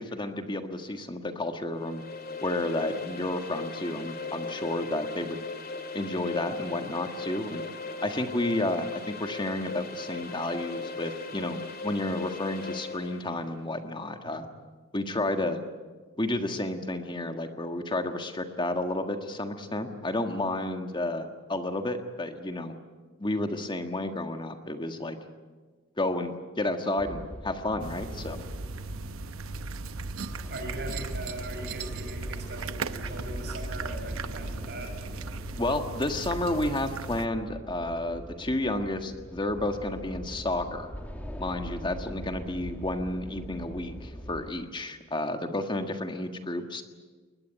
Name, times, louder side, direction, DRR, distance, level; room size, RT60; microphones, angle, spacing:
voice 1, 0.0-2.0 2.4-5.4 5.9-7.6 8.0-14.5 14.9-15.6 16.2-22.7 23.2-25.2 26.0-28.4 35.6-40.9 41.4-46.8, left 1 dB, 25° left, 6 dB, 1.6 m, -31 dB
sound 1, 1.7-13.4, left 3 dB, 50° left, 2.5 m, -38 dB
sound 2, 27.0-44.5, equal, 10° left, 2.2 m, -41 dB
sound 3, 27.8-37.3, right 4 dB, 90° right, 0.9 m, -38 dB
voice 2, 30.5-35.0, right 2 dB, 55° right, 3 dB, 6.9 m, -40 dB
21.5 x 20.5 x 8.8 m, 1.4 s
head